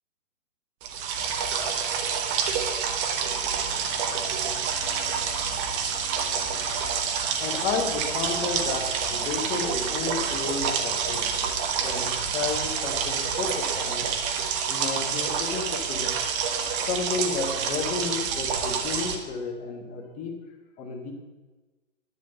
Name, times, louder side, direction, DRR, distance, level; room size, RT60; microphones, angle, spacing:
sound 1, 0.8-19.2, right 6 dB, 25° right, 1.3 m, -28 dB
sound 2, 3.5-13.6, left 2 dB, ahead, 1.9 m, -46 dB
voice 1, 7.4-11.3 11.8-14.1 14.7-16.1 16.9-20.3 20.8-21.1, left 5 dB, 20° left, 2 dB, 2.1 m, -32 dB
11.0 x 8.1 x 8.0 m, 1.2 s
figure-of-eight pair, 130°, 38 cm